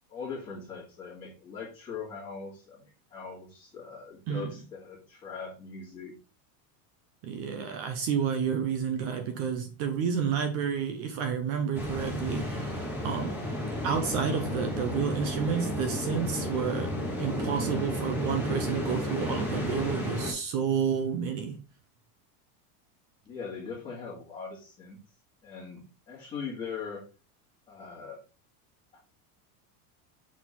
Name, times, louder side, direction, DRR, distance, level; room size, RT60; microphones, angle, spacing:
voice 1, 0.1-2.8 3.1-6.1 23.2-25.0 25.4-27.1 27.7-28.2 28.9-29.0, left 5 dB, 15° left, 2.3 m, -40 dB
voice 2, 7.2-13.4 13.8-16.9 17.2-21.6, right 7 dB, 30° right, 0.6 m, -30 dB
sound 1, 11.7-20.3, left 1 dB, 5° right, 1.6 m, -32 dB
6.2 x 4.3 x 3.7 m
supercardioid pair, 175°, 45 cm